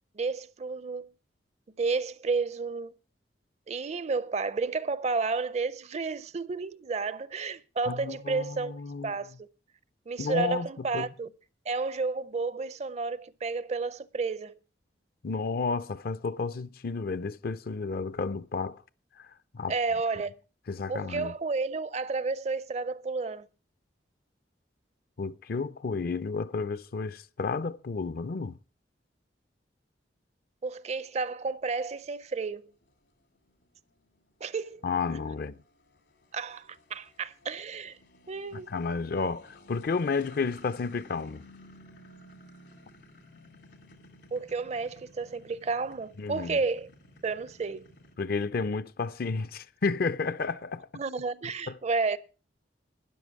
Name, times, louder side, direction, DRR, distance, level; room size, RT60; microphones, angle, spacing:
voice 1, 0.2-1.1 1.8-2.9 3.7-8.8 9.0-9.5 10.1-11.3 11.7-14.6 19.7-20.3 20.9-23.5 30.6-32.7 34.4-34.8 36.3-38.0 38.3-38.7 44.3-46.9 47.2-47.9 50.9-52.2, right 4 dB, 40° right, 0.5 m, -31 dB
voice 2, 7.9-9.1 10.2-10.7 10.9-11.1 15.2-18.8 19.5-19.7 20.7-21.3 25.2-28.6 34.8-35.6 38.5-41.4 46.2-46.6 48.2-50.9 51.7-51.8, left 4 dB, 55° left, 0.5 m, -31 dB
sound 1, 32.0-48.1, left 1 dB, 80° left, 2.1 m, -55 dB
12.5 x 10.0 x 4.7 m
head